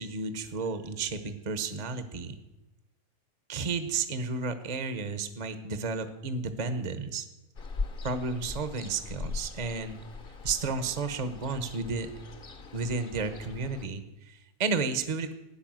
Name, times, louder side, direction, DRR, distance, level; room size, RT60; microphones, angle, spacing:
voice 1, 0.0-2.4 3.5-7.3 8.0-10.0 10.4-12.1 12.7-15.3, right 4 dB, 30° right, 10 dB, 0.9 m, -32 dB
Ocean, 7.6-13.9, left 4 dB, 40° left, 1.2 m, -40 dB
14.5 x 9.7 x 7.6 m, 0.98 s
omnidirectional pair, 1.6 m